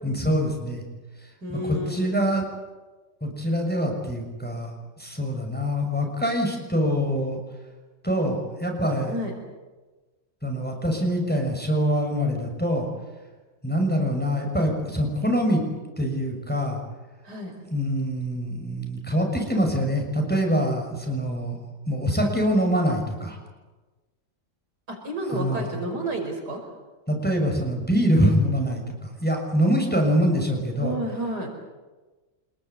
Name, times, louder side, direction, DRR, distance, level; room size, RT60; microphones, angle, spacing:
voice 1, 0.0-0.8 1.5-2.4 3.2-4.7 5.0-7.4 8.0-9.1 10.4-12.9 13.6-15.6 16.0-16.8 17.7-21.5 21.9-23.4 25.3-25.7 27.1-30.9, equal, 5° left, 1 dB, 6.1 m, -24 dB
voice 2, 1.4-2.2 9.1-9.3 17.2-17.5 24.9-26.7 30.8-31.5, right 1 dB, 65° right, 3 dB, 5.9 m, -31 dB
27.5 x 21.5 x 8.4 m, 1.2 s
omnidirectional pair, 1.9 m